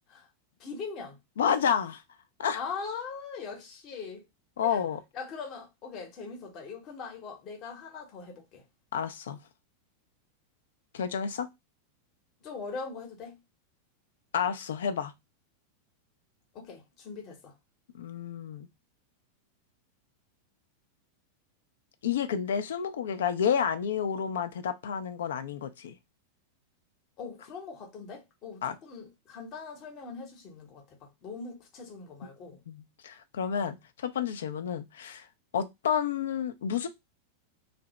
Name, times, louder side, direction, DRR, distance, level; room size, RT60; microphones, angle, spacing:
voice 1, 0.6-1.2 2.5-4.2 4.6-4.8 5.1-8.6 12.4-13.4 16.5-17.5 27.2-32.6, left 5 dB, 35° left, 0.9 m, -41 dB
voice 2, 1.4-2.0 2.4-2.6 4.6-5.0 8.9-9.4 10.9-11.5 14.3-15.1 17.9-18.7 22.0-25.9 28.6-28.8 32.7-35.3 35.5-36.9, left 7 dB, 60° left, 0.4 m, -30 dB
2.7 x 2.0 x 3.0 m
figure-of-eight pair, 90°, 0 cm